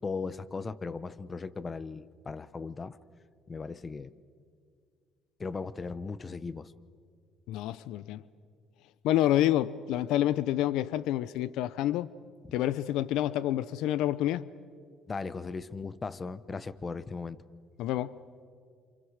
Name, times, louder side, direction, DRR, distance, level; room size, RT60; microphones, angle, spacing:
voice 1, 0.0-3.0 3.5-4.1 5.4-6.7 15.1-17.4, left 4 dB, 30° left, 1.0 m, -37 dB
voice 2, 7.5-8.2 9.0-12.1 12.5-14.5 17.8-18.1, left 13 dB, 80° left, 0.6 m, -28 dB
28.5 x 27.5 x 6.6 m
supercardioid pair, 90°, 0 cm